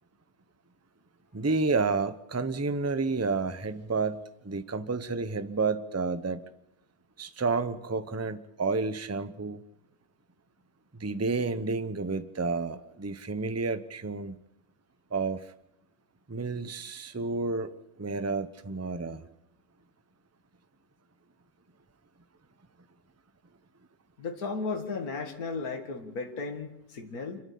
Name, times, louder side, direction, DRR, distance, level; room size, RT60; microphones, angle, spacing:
voice 1, 1.3-6.4 7.2-9.6 10.9-14.4 15.1-15.5 16.3-19.3, right 4 dB, 15° right, 12 dB, 0.7 m, -30 dB
voice 2, 24.2-27.4, left 4 dB, 70° left, 4 dB, 2.4 m, -35 dB
26.5 x 13.0 x 8.5 m, 0.87 s
omnidirectional pair, 1.6 m